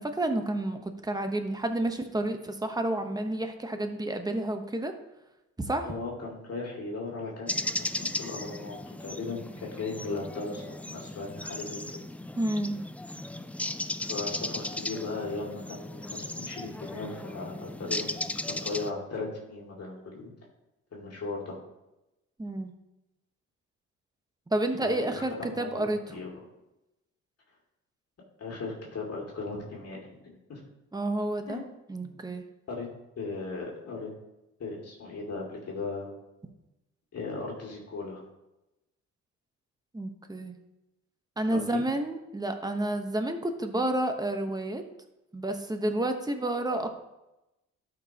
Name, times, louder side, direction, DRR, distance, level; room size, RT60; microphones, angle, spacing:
voice 1, 0.0-4.9 5.6-5.9 12.4-12.8 22.4-22.7 24.5-26.1 30.9-31.6 31.9-32.4 39.9-40.5 41.4-44.8 45.3-46.9, right 1 dB, 15° right, 6 dB, 1.0 m, -30 dB
voice 2, 5.8-11.8 14.1-20.3 20.9-21.6 24.8-26.3 28.4-30.0 30.2-30.6 31.5-31.6 32.0-32.1 32.7-32.9 33.2-34.1 34.6-36.1 37.1-38.2 41.5-41.8, left 3 dB, 55° left, -3 dB, 2.3 m, -37 dB
sound 1, 7.5-18.9, left 1 dB, 5° left, 0.3 m, -36 dB
12.5 x 5.4 x 2.9 m, 0.95 s
cardioid pair, 90°, 30 cm